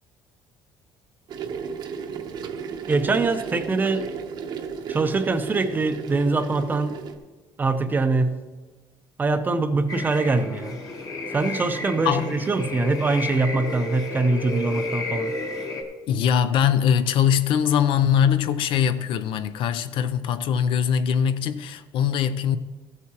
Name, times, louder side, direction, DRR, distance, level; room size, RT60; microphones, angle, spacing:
sound 1, 1.3-7.2, right 6 dB, 45° right, 0.8 m, -34 dB
voice 1, 2.9-4.1 4.9-7.0 7.6-8.3 9.2-10.8 11.3-15.3, right 3 dB, 20° right, 0.5 m, -23 dB
sound 2, 9.9-15.8, left 2 dB, 35° left, 1.1 m, -32 dB
voice 2, 16.1-22.6, left 8 dB, 60° left, 0.5 m, -22 dB
14.5 x 8.2 x 2.9 m
cardioid pair, 155°, 10 cm